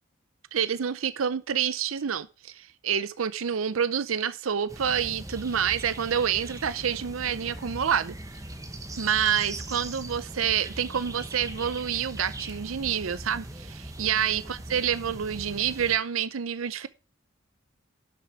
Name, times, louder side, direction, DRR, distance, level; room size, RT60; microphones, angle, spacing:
voice 1, 0.5-8.1 9.0-16.9, right 8 dB, 85° right, 0.6 m, -28 dB
sound 1, 4.7-16.0, right 1 dB, 15° right, 1.2 m, -40 dB
11.5 x 6.8 x 4.7 m
head